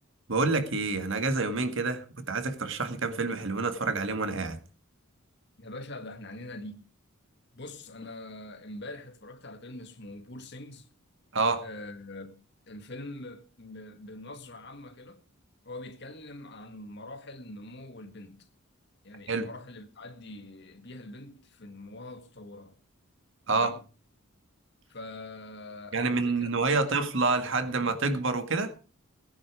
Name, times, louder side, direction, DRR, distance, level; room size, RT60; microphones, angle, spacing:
voice 1, 0.3-4.6 11.3-11.6 19.3-19.5 23.5-23.7 25.9-28.7, right 3 dB, 60° right, 2.0 m, -28 dB
voice 2, 5.6-6.9 7.5-10.9 11.6-15.2 15.6-18.5 19.0-22.8 23.5-23.8 24.9-27.0, left 2 dB, 50° left, 1.9 m, -44 dB
18.5 x 10.0 x 4.9 m
head